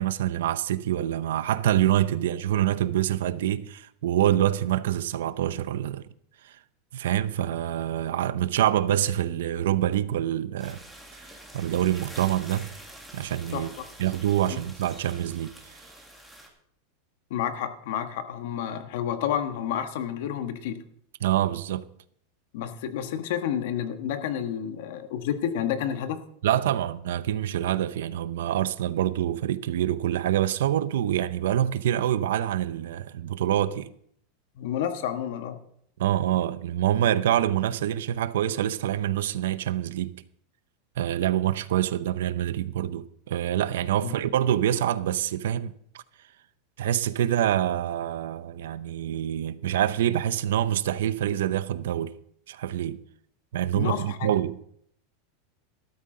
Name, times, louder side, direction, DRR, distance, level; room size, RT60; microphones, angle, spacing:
voice 1, 0.0-6.1 6.4-6.6 6.9-10.8 11.5-12.7 13.1-13.7 14.0-15.8 21.2-21.8 26.4-33.9 36.0-40.2 41.0-46.0 46.8-52.1 52.5-53.0 53.5-54.5, right 11 dB, 85° right, 0.7 m, -26 dB
sound 1, 10.6-16.5, right 1 dB, ahead, 1.8 m, -46 dB
voice 2, 13.5-13.9 14.5-14.6 17.3-20.8 22.5-26.2 34.6-35.6 44.0-44.2 53.7-54.3, left 9 dB, 65° left, 1.3 m, -30 dB
13.0 x 12.5 x 3.8 m
supercardioid pair, 165°, 0 cm